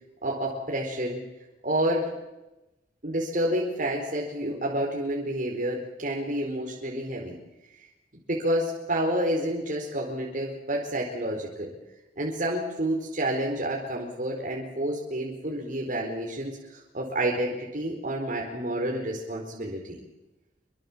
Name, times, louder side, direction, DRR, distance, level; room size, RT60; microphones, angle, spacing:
voice 1, 0.2-1.2 1.6-2.1 3.0-7.4 8.3-11.7 12.2-20.0, right 1 dB, 50° right, 0 dB, 4.7 m, -29 dB
27.5 x 24.5 x 7.5 m, 1.0 s
head